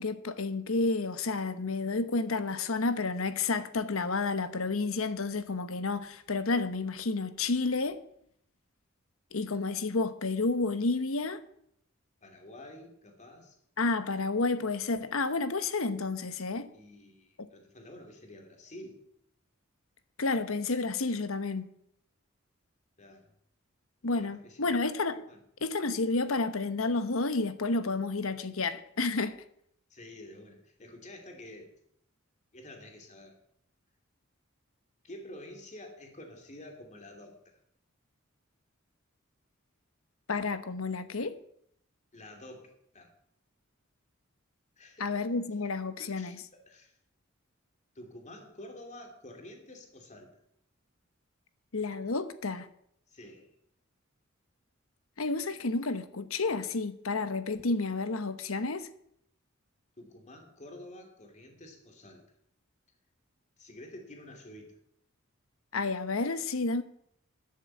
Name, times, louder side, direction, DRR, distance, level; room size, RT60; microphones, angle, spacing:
voice 1, 0.0-8.0 9.3-11.4 13.8-16.7 20.2-21.7 24.0-25.3 25.6-29.4 40.3-41.4 45.0-46.4 51.7-52.7 55.2-58.9 65.7-66.8, left 3 dB, 80° left, 1.0 m, -30 dB
voice 2, 12.2-13.6 16.7-19.0 23.0-23.3 24.0-24.8 25.3-25.4 29.9-31.7 32.5-33.4 35.0-37.6 42.1-43.1 44.8-45.2 46.0-47.0 47.9-50.3 53.1-53.6 60.0-62.3 63.6-64.8, left 1 dB, 35° left, 2.6 m, -49 dB
11.0 x 7.5 x 7.6 m
head